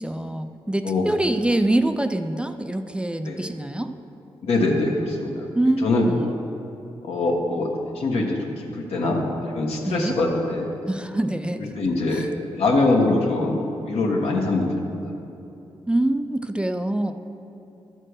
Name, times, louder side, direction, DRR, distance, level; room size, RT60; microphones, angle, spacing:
voice 1, 0.0-3.9 5.5-6.3 9.8-10.1 10.9-11.7 12.1-12.3 15.9-17.1, right 1 dB, 10° right, 7 dB, 0.4 m, -25 dB
voice 2, 4.4-5.4 5.8-6.3 7.0-7.7 7.9-10.7 11.6-12.3 12.6-14.9, left 2 dB, 80° left, 0 dB, 1.4 m, -23 dB
12.5 x 4.4 x 6.4 m, 3.0 s
cardioid pair, 70°, 10 cm